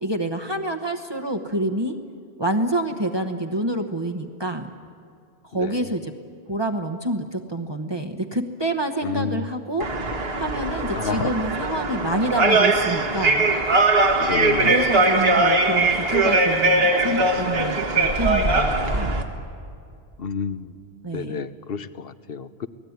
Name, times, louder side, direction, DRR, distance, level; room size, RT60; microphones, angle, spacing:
voice 1, 0.0-2.0 2.4-4.7 5.4-6.1 6.5-9.9 10.3-13.4 14.6-19.2 21.0-21.4, right 1 dB, 25° right, 4 dB, 1.1 m, -27 dB
voice 2, 5.6-5.9 9.0-9.5 10.9-11.3 14.2-14.7 20.2-20.7 21.1-22.7, left 6 dB, 65° left, 13 dB, 1.1 m, -29 dB
sound 1, 9.8-19.2, right 2 dB, 65° right, 2.0 m, -20 dB
28.0 x 19.0 x 9.5 m, 2.3 s
omnidirectional pair, 1.1 m